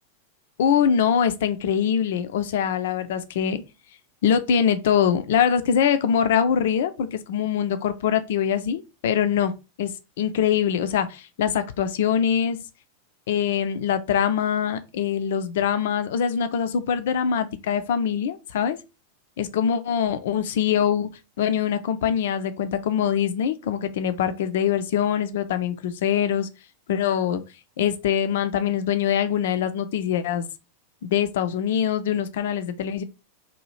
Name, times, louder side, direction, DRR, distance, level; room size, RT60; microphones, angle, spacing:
voice 1, 0.6-3.6 4.2-9.5 9.8-9.9 10.2-12.6 13.3-18.8 19.4-21.1 21.4-26.5 26.9-27.4 27.8-30.5 31.1-33.0, left 8 dB, 55° left, 0.4 m, -23 dB
2.7 x 2.4 x 3.0 m
figure-of-eight pair, 90°, 0 cm